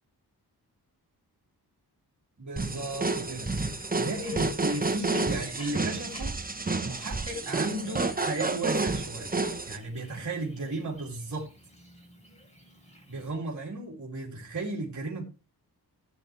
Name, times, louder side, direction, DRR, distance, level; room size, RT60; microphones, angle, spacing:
voice 1, 2.4-9.4 9.6-11.5 13.1-15.3, right 2 dB, 45° right, -3 dB, 3.0 m, -35 dB
sound 1, 2.6-9.8, right 3 dB, 20° right, 1.1 m, -30 dB
Bird, 3.3-13.3, equal, 15° left, 4.7 m, -53 dB
15.5 x 8.3 x 3.4 m, 0.33 s
wide cardioid pair, 85°, 40 cm